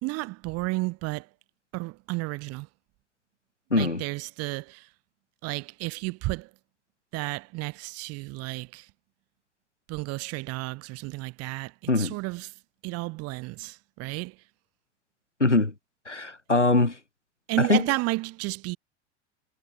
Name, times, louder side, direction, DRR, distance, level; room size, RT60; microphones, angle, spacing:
voice 1, 0.0-1.3 1.7-2.7 3.8-4.9 5.4-6.5 7.1-8.9 9.9-12.5 12.8-14.4 17.5-18.8, right 23 dB, 45° right, 4.1 m, -32 dB
voice 2, 3.7-4.0 11.9-12.2 15.4-15.7 16.1-17.0 17.6-17.8, left 2 dB, 90° left, 2.0 m, -22 dB
figure-of-eight pair, 80°, 34 cm